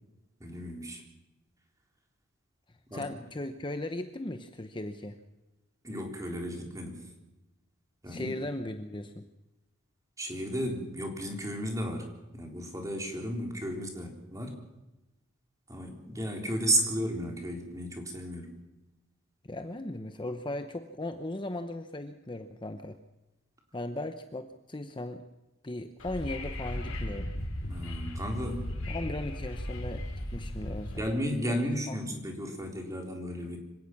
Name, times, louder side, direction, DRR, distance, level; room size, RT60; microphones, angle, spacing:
voice 1, 0.4-1.0 2.9-3.2 5.8-7.1 8.0-8.5 10.2-14.6 15.7-18.6 27.7-28.7 30.9-33.6, equal, 15° right, 2 dB, 3.8 m, -34 dB
voice 2, 2.9-5.2 8.1-9.3 19.4-23.0 23.7-25.2 25.6-27.3 28.9-30.1 30.3-31.1 31.4-32.0, left 1 dB, 25° left, 8 dB, 0.9 m, -37 dB
Wind / Subway metro underground, 26.0-31.0, left 1 dB, 65° left, 4.7 m, -36 dB
26.0 x 17.0 x 6.1 m, 1.0 s
head